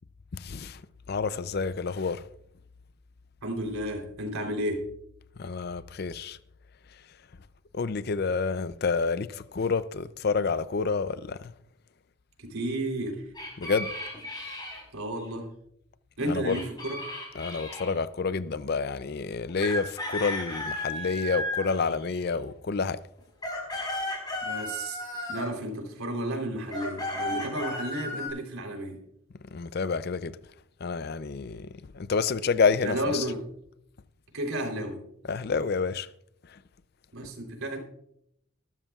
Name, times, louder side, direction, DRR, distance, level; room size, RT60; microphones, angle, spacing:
voice 1, 0.4-0.8 1.1-2.2 5.4-6.4 7.7-11.4 13.6-13.9 16.3-16.5 17.4-23.0 29.5-30.4 30.8-31.7 31.9-33.2 35.3-36.1, left 4 dB, 50° left, 0.5 m, -28 dB
voice 2, 3.4-4.9 12.4-13.3 14.9-15.5 16.2-17.0 24.4-25.0 25.3-29.0 32.8-33.5 34.3-35.0 37.1-37.8, right 1 dB, 90° right, 3.5 m, -32 dB
sound 1, 13.3-14.8 16.5-17.9 19.6-22.3 23.2-25.6 26.7-28.3, left 1 dB, 20° left, 4.4 m, -34 dB
20.5 x 13.0 x 2.4 m
head